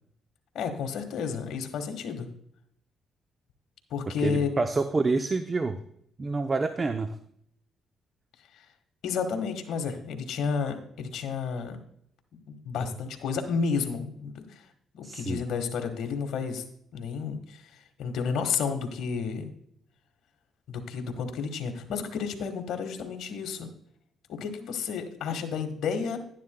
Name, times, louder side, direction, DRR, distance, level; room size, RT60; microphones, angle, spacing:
voice 1, 0.5-2.3 3.9-4.5 9.0-11.8 12.5-14.6 15.0-16.6 16.9-17.6 18.0-19.5 20.7-23.7 24.3-26.2, left 5 dB, 80° left, 6 dB, 1.5 m, -31 dB
voice 2, 4.2-5.8 6.2-7.2 15.0-15.4, right 3 dB, 30° right, 8 dB, 0.6 m, -27 dB
11.0 x 11.0 x 2.2 m, 0.68 s
cardioid pair, 90°, 0 cm